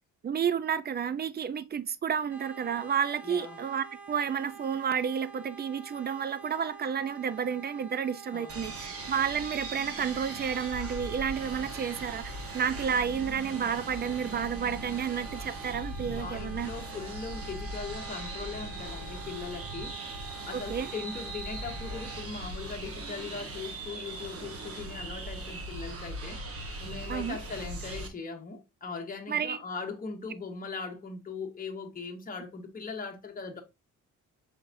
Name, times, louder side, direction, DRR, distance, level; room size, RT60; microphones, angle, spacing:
voice 1, 0.2-16.7 20.5-20.9 27.1-27.4 29.3-29.6, right 7 dB, 30° right, 0.5 m, -31 dB
sound 1, 2.3-22.2, right 6 dB, 5° right, 1.2 m, -47 dB
voice 2, 3.2-3.6 8.3-9.0 16.1-20.0 20.5-33.6, left 4 dB, 25° left, 1.1 m, -40 dB
sound 2, 8.5-28.1, right 2 dB, 45° right, 1.2 m, -40 dB
5.4 x 3.8 x 2.5 m
cardioid pair, 85°, 31 cm